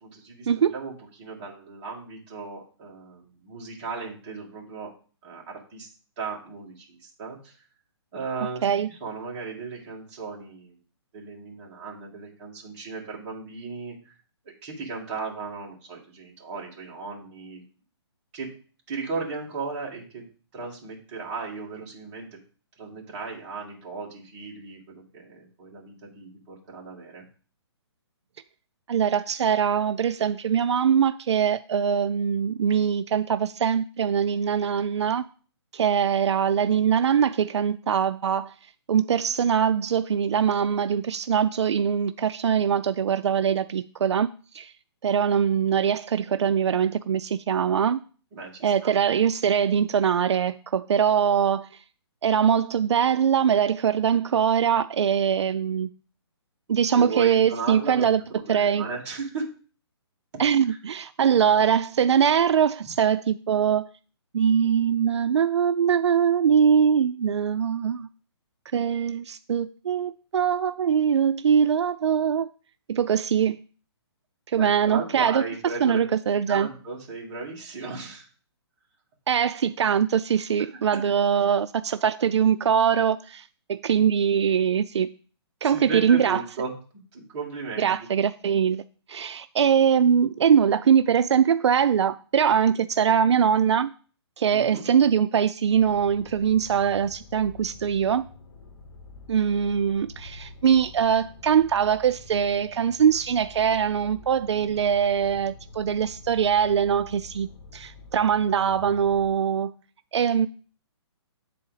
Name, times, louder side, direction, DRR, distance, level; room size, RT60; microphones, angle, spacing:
voice 1, 0.0-4.9 5.2-5.9 6.2-7.6 8.1-10.7 11.1-14.1 14.6-17.6 18.3-18.5 18.9-20.2 20.5-22.3 22.8-27.2 48.3-48.9 56.9-59.6 60.7-60.8 74.6-76.0 76.5-78.3 85.6-86.7 87.1-87.9 94.5-94.8, right 4 dB, 20° right, 1.7 m, -36 dB
voice 2, 28.9-35.2 35.7-38.5 38.9-44.3 44.5-44.7 45.0-48.0 48.6-51.7 52.2-55.9 56.7-58.2 58.5-58.9 60.4-63.9 64.3-68.1 68.7-72.5 72.9-73.6 74.5-75.4 75.8-76.7 79.3-85.1 85.6-86.4 87.8-88.8 89.1-93.9 94.4-98.2 99.3-109.7 110.1-110.5, right 8 dB, 75° right, 0.4 m, -22 dB
sound 1, 95.7-109.3, left 3 dB, 85° left, 1.1 m, -47 dB
8.1 x 4.2 x 3.9 m
hypercardioid pair, 170°, 15 cm